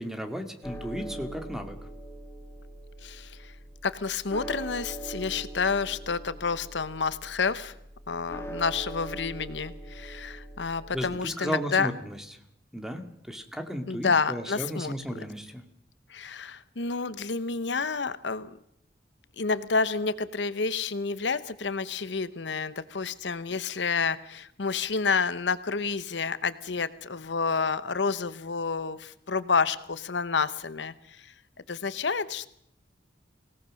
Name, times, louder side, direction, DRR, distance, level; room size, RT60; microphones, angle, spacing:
voice 1, 0.0-1.9 10.9-12.2 12.7-15.6, equal, 5° right, 6 dB, 2.1 m, -34 dB
sound 1, 0.6-11.2, right 1 dB, 15° left, 1.8 m, -42 dB
voice 2, 3.0-3.5 3.8-7.7 8.1-11.9 13.9-14.9 16.1-18.6 19.4-31.3 31.7-32.5, left 5 dB, 75° left, 15 dB, 0.9 m, -29 dB
25.0 x 17.5 x 6.4 m, 0.73 s
head